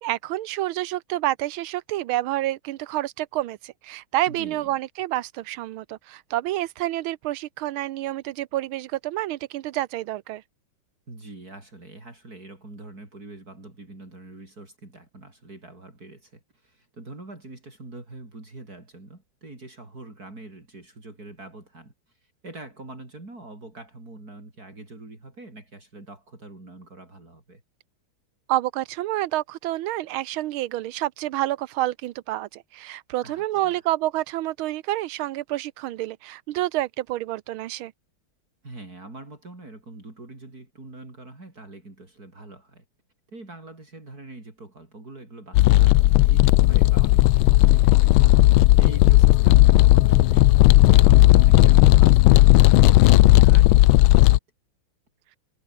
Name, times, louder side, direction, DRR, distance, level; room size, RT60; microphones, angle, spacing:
voice 1, 0.0-10.4 28.5-37.9, right 15 dB, 85° right, 1.6 m, -28 dB
voice 2, 4.3-4.7 11.1-27.6 33.2-33.8 38.6-42.8 43.3-48.2 48.8-50.5 50.9-54.4, right 2 dB, 45° right, 5.8 m, -44 dB
sound 1, 45.5-54.4, left 16 dB, 85° left, 1.4 m, -14 dB
omnidirectional pair, 2.2 m